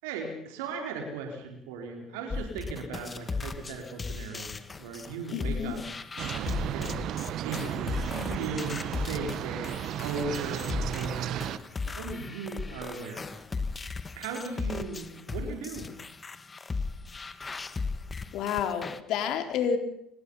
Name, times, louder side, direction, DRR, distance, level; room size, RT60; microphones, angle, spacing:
voice 1, 0.0-5.8 6.4-7.0 7.4-11.5 11.9-13.4 14.2-15.9, right 4 dB, 85° right, 3 dB, 4.4 m, -37 dB
sound 1, 2.3-19.0, left 4 dB, 25° left, 1.8 m, -36 dB
voice 2, 5.3-5.8 18.3-19.8, left 7 dB, 65° left, 6 dB, 4.0 m, -29 dB
sound 2, 6.2-11.6, right 11 dB, 60° right, 1.3 m, -34 dB
26.0 x 20.5 x 5.7 m, 0.79 s
supercardioid pair, 75°, 0 cm